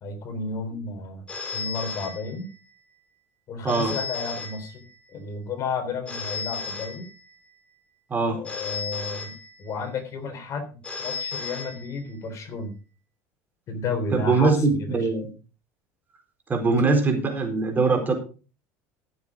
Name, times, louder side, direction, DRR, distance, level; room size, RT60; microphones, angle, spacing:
voice 1, 0.0-1.2 1.5-2.5 3.5-4.9 5.1-7.1 8.3-12.7 13.7-15.1, left 4 dB, 45° left, 8 dB, 3.5 m, -32 dB
Telephone, 1.3-2.8 3.7-5.2 6.1-7.6 8.4-9.9 10.8-12.3, left 5 dB, 15° left, 4.0 m, -35 dB
voice 2, 14.1-15.3 16.5-18.1, right 3 dB, 25° right, 3 dB, 4.2 m, -22 dB
15.0 x 7.3 x 5.0 m, 0.35 s
supercardioid pair, 115°, 7 cm